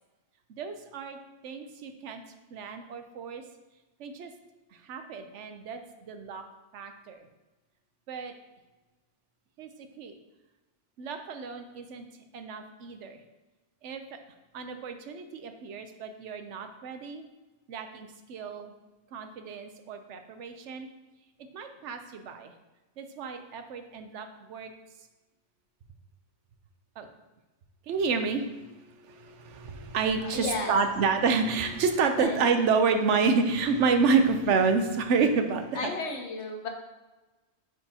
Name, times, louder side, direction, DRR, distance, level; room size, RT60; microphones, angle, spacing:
voice 1, 0.5-1.2 1.4-2.2 2.5-3.4 4.0-4.3 4.8-6.4 6.7-7.2 8.1-8.3 9.6-9.7 10.0-10.1 11.0-12.0 12.3-13.2 13.8-14.2 14.5-17.2 17.7-18.7 19.1-20.9 21.5-22.5 23.0-24.7 27.0-27.1 27.9-28.7 29.0-35.8, right 5 dB, 85° right, 7 dB, 1.0 m, -29 dB
voice 2, 30.3-30.7 32.2-32.4 35.8-36.7, left 3 dB, 75° left, 3 dB, 1.3 m, -33 dB
9.8 x 4.7 x 2.8 m, 1.1 s
omnidirectional pair, 1.2 m